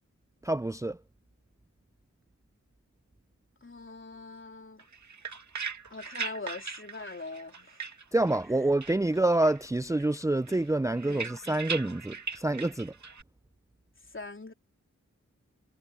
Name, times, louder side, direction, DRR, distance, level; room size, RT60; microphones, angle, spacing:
voice 1, 0.4-1.0 8.1-12.9, right 2 dB, 10° right, 0.5 m, -27 dB
voice 2, 3.6-4.8 5.9-7.9 10.9-11.3 14.1-14.5, left 3 dB, 40° left, 3.7 m, -42 dB
sound 1, 4.8-8.5 8.8-9.7 10.0-13.2, right 5 dB, 70° right, 2.3 m, -39 dB
cardioid pair, 50°, 30 cm